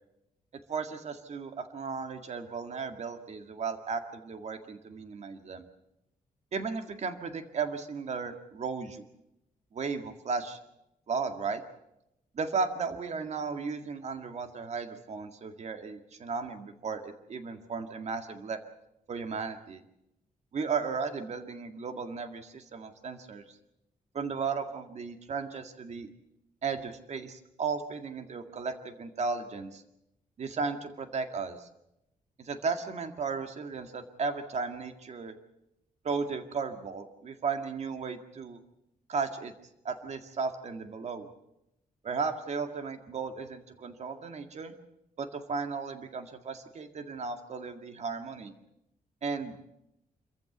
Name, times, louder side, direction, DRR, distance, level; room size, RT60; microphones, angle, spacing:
voice 1, 0.7-5.6 6.5-9.0 9.7-10.6 11.1-11.6 12.3-18.6 19.1-19.8 20.5-23.6 24.1-26.1 26.6-29.8 30.4-31.7 32.4-35.4 36.0-38.6 39.1-39.5 39.8-41.3 42.0-44.7 45.2-48.5 49.2-49.5, right 5 dB, 50° right, 7 dB, 2.0 m, -35 dB
27.0 x 14.5 x 8.1 m, 0.87 s
wide cardioid pair, 165°, 15 cm